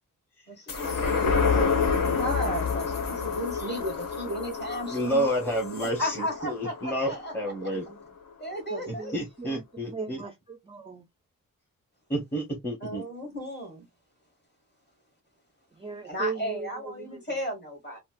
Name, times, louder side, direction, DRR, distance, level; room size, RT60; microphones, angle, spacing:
voice 1, 0.5-5.3 6.0-7.3 8.4-9.2 9.8-9.9 12.8-13.9 16.0-18.0, equal, 30° left, 1.9 m, -35 dB
sound 1, 0.7-7.5 7.9-8.0, left 5 dB, 75° left, 1.2 m, -28 dB
voice 2, 4.9-7.8 8.9-10.2 12.1-13.0, equal, 5° left, 0.9 m, -30 dB
voice 3, 7.7-8.1 8.7-9.6 9.9-11.1 15.7-17.2, right 4 dB, 15° right, 0.4 m, -38 dB
3.9 x 2.1 x 2.4 m
wide cardioid pair, 145°, 33 cm